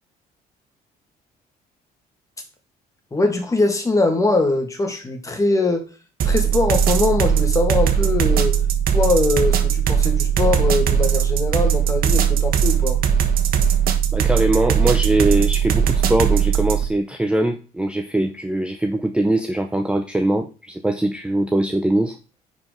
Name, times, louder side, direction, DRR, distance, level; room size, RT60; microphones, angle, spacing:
voice 1, 3.1-5.9 6.2-8.6 8.9-13.0, left 2 dB, 20° left, 2.1 m, -22 dB
sound 1, 6.2-16.9, right 8 dB, 60° right, 1.3 m, -19 dB
voice 2, 14.1-22.2, right 1 dB, 5° right, 0.7 m, -21 dB
9.8 x 4.8 x 4.0 m
cardioid pair, 110°, 17 cm